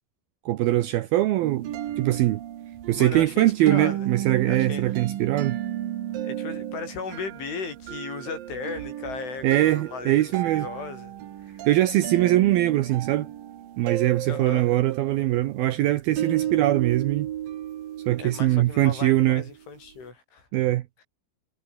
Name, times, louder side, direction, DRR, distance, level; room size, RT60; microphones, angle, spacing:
voice 1, 0.5-1.7 2.0-2.4 2.9-5.6 9.4-10.7 11.7-13.3 13.8-17.3 18.1-19.4 20.5-20.8, right 15 dB, 75° right, 2.2 m, -22 dB
sound 1, 1.4-19.5, right 11 dB, 60° right, 2.8 m, -33 dB
voice 2, 3.0-4.1 4.5-4.9 6.2-11.1 11.4-11.7 12.2-12.4 14.3-14.7 18.2-20.5, left 5 dB, 85° left, 9.6 m, -36 dB
omnidirectional pair, 5.3 m